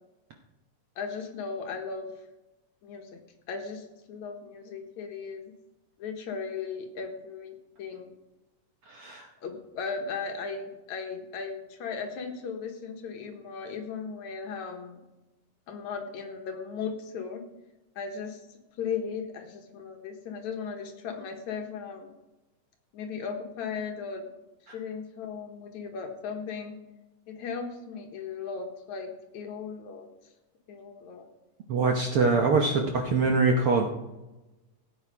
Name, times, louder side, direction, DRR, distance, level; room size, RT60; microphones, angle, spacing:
voice 1, 1.0-2.1 2.8-3.2 3.5-5.5 6.0-8.1 9.4-15.0 15.7-17.4 18.0-18.5 18.8-22.1 22.9-24.3 24.7-26.8 27.3-30.1 30.7-31.3, left 5 dB, 70° left, 4 dB, 2.6 m, -37 dB
voice 2, 8.9-9.3 31.7-33.9, right 4 dB, 60° right, 2 dB, 1.5 m, -24 dB
17.0 x 8.6 x 4.9 m, 1.0 s
omnidirectional pair, 3.6 m